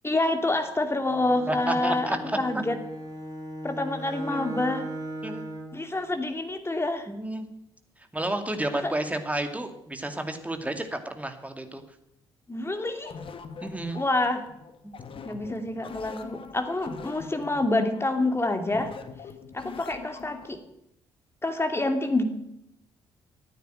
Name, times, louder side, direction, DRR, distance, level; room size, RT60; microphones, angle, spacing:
voice 1, 0.0-2.1 2.4-2.8 3.6-4.9 5.7-7.1 8.7-8.9 12.5-13.2 13.9-14.4 15.2-18.9 19.5-20.6 21.4-22.2, left 2 dB, 20° left, 6 dB, 2.7 m, -27 dB
Bowed string instrument, 1.1-5.8, right 1 dB, 30° right, 5.6 m, -38 dB
voice 2, 1.5-2.4 4.3-4.5 5.2-5.4 7.1-7.4 8.1-11.8 13.6-14.0 14.8-14.9, right 1 dB, 10° right, 7 dB, 2.4 m, -31 dB
sound 1, 13.0-20.6, left 5 dB, 45° left, 1.5 m, -43 dB
14.5 x 9.2 x 9.0 m, 0.81 s
figure-of-eight pair, 45°, 13 cm